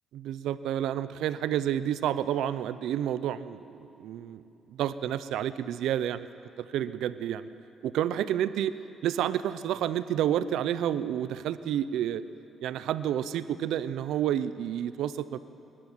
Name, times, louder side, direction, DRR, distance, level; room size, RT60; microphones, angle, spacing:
voice 1, 0.1-4.4 4.7-6.3 6.6-7.5 7.8-8.7 9.0-12.2 12.6-15.4, right 10 dB, 85° right, 14 dB, 0.7 m, -30 dB
22.5 x 12.0 x 9.8 m, 2.9 s
cardioid pair, 90°, 0 cm